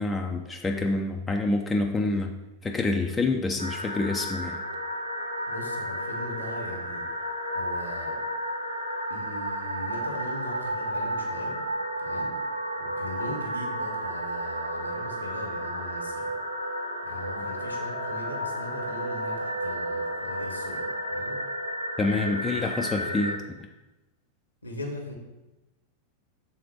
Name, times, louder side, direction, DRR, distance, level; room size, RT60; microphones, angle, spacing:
voice 1, 0.0-2.3 2.6-4.6 22.0-23.7, left 2 dB, 15° left, 2 dB, 0.5 m, -27 dB
sound 1, 3.6-23.4, right 1 dB, 85° right, 0.6 m, -32 dB
voice 2, 5.5-7.1 7.5-8.2 9.1-11.6 12.0-12.3 12.8-16.3 17.0-21.4 22.0-22.5 22.9-23.1 24.6-25.2, left 1 dB, 85° left, 2 dB, 1.2 m, -39 dB
6.8 x 3.9 x 4.6 m, 1.1 s
figure-of-eight pair, 90°, 0 cm